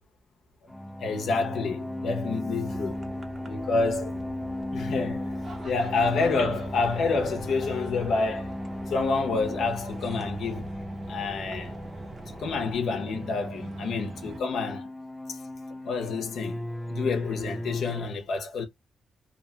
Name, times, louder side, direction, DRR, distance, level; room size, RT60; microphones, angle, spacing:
sound 1, 0.7-18.1, left 1 dB, 5° left, 0.4 m, -36 dB
voice 1, 1.0-3.0 3.5-4.1 4.7-5.3 5.6-8.6 8.9-10.7 11.1-11.7 12.4-14.9 15.3-15.4 15.8-16.6 16.9-18.6, left 4 dB, 85° left, 0.7 m, -28 dB
sound 2, 2.6-12.8, equal, 30° right, 1.0 m, -45 dB
sound 3, 5.4-14.4, right 4 dB, 60° right, 0.9 m, -47 dB
2.8 x 2.2 x 2.7 m
cardioid pair, 95°, 0 cm